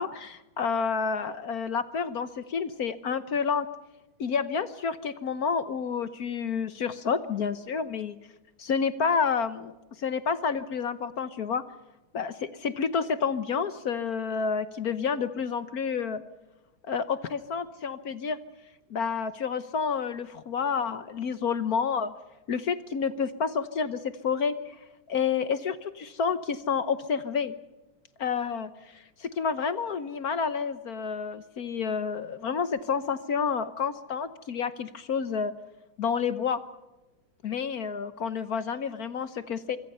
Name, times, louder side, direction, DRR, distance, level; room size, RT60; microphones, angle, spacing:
voice 1, 0.0-3.7 4.2-8.2 8.6-11.6 12.1-16.2 16.9-18.4 18.9-22.1 22.5-24.8 25.1-27.5 28.2-35.5 36.0-36.6 37.4-39.8, left 6 dB, 55° left, 13 dB, 1.1 m, -29 dB
24.5 x 24.5 x 5.5 m, 1.1 s
omnidirectional pair, 2.4 m